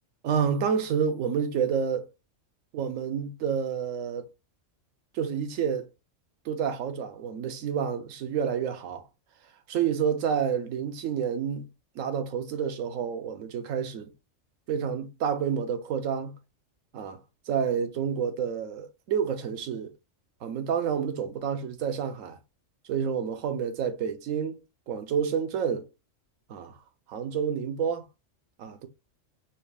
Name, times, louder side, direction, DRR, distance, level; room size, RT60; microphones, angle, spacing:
voice 1, 0.2-2.1 2.7-4.2 5.1-5.9 6.5-9.0 9.7-11.7 12.0-14.1 14.7-16.4 16.9-17.2 17.5-19.9 20.4-22.4 22.9-24.6 24.9-25.9 26.5-26.7 27.1-28.0 28.6-28.9, right 7 dB, 85° right, 1.1 m, -29 dB
4.2 x 2.3 x 3.4 m
omnidirectional pair, 1.3 m